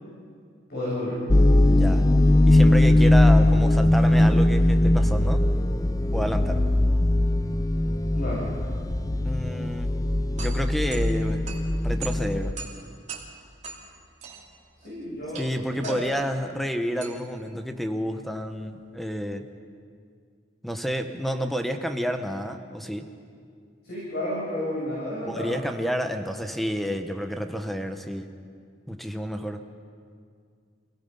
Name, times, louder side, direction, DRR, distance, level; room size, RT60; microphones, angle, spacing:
voice 1, 0.7-1.2 8.1-8.5 14.8-15.5 15.8-16.0 23.8-25.5, left 1 dB, 55° left, -8 dB, 7.4 m, -31 dB
sound 1, 1.3-12.5, left 1 dB, 20° left, 0.5 m, -20 dB
voice 2, 1.7-2.1 2.4-5.4 6.1-6.6 9.2-10.0 10.3-11.5 11.8-12.5 15.4-19.5 20.6-23.1 25.3-28.3 28.9-29.6, equal, ahead, 6 dB, 1.1 m, -30 dB
sound 2, 10.0-19.0, right 5 dB, 40° right, 3.1 m, -43 dB
27.5 x 18.5 x 5.6 m, 2.2 s
head